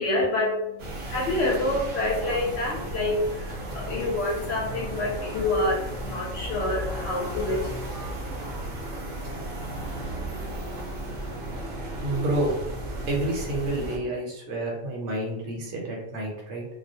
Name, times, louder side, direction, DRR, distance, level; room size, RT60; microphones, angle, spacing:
voice 1, 0.0-7.7, left 2 dB, 65° left, -4 dB, 0.7 m, -27 dB
sound 1, 0.8-14.0, right 1 dB, 55° right, 0.7 m, -34 dB
voice 2, 12.0-12.5 13.1-16.7, right 1 dB, 75° right, -1 dB, 1.0 m, -29 dB
2.3 x 2.0 x 2.6 m, 0.88 s
omnidirectional pair, 1.3 m